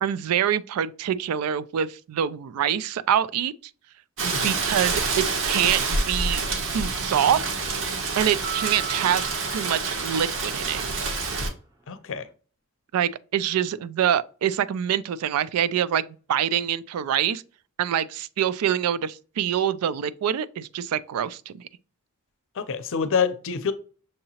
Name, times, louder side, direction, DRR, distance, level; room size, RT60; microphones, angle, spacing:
voice 1, 0.0-3.5 4.2-6.4 6.7-7.5 8.2-9.2 9.5-10.8 12.9-17.4 17.8-21.6, right 9 dB, 80° right, 0.3 m, -25 dB
Rain, 4.2-11.5, right 4 dB, 65° right, 0.9 m, -27 dB
sound 1, 8.4-11.0, right 7 dB, 15° right, 0.6 m, -38 dB
voice 2, 11.9-12.3 22.5-23.7, left 6 dB, 60° left, 0.6 m, -26 dB
6.4 x 2.8 x 2.8 m
head